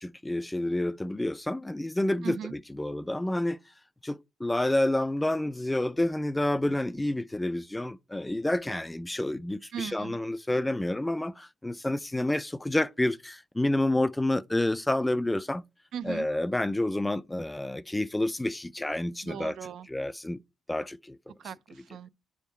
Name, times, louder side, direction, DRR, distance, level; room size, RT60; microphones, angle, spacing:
voice 1, 0.0-3.6 4.0-15.6 16.1-19.5 19.9-20.4 20.7-21.2, left 1 dB, 10° left, 0.3 m, -29 dB
voice 2, 2.2-2.5 9.7-10.2 15.9-16.3 19.2-19.9 21.4-22.1, right 8 dB, 70° right, 0.4 m, -38 dB
9.0 x 3.6 x 4.2 m
cardioid pair, 90°, 0 cm